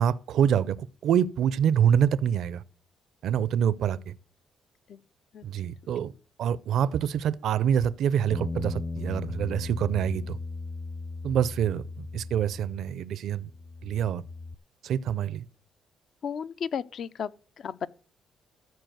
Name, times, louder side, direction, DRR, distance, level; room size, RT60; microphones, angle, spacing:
voice 1, 0.0-2.6 3.2-4.1 5.4-6.1 6.4-10.4 11.2-13.5 13.8-14.2 14.8-15.4, right 9 dB, 75° right, 0.5 m, -26 dB
Bass guitar, 8.3-13.1 13.4-14.5, left 3 dB, 15° left, 0.6 m, -37 dB
voice 2, 16.2-17.9, left 7 dB, 60° left, 0.5 m, -34 dB
14.0 x 4.7 x 7.8 m
cardioid pair, 90°, 0 cm